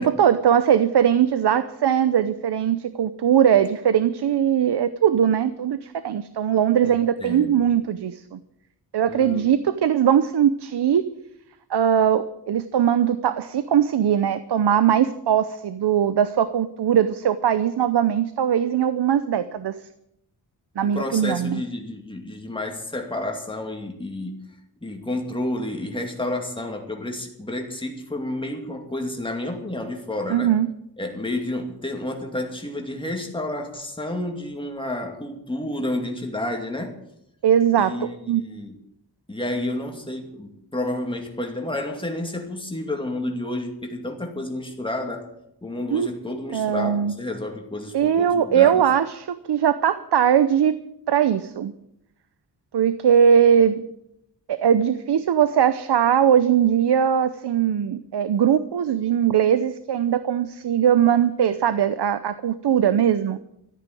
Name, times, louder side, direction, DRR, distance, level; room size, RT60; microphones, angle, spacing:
voice 1, 0.0-8.4 8.9-11.0 11.7-19.8 20.8-21.6 30.3-30.7 37.4-38.4 45.9-46.1 46.5-47.1 47.9-50.7 51.1-51.7 52.7-53.8 54.5-63.4, right 9 dB, 85° right, 13 dB, 0.8 m, -20 dB
voice 2, 6.8-7.7 9.1-9.5 20.9-24.5 24.8-30.5 31.0-37.0 37.8-38.7 39.3-45.3 45.6-48.8, left 1 dB, 15° left, 2 dB, 2.4 m, -30 dB
14.0 x 9.1 x 9.1 m, 0.78 s
wide cardioid pair, 145°, 39 cm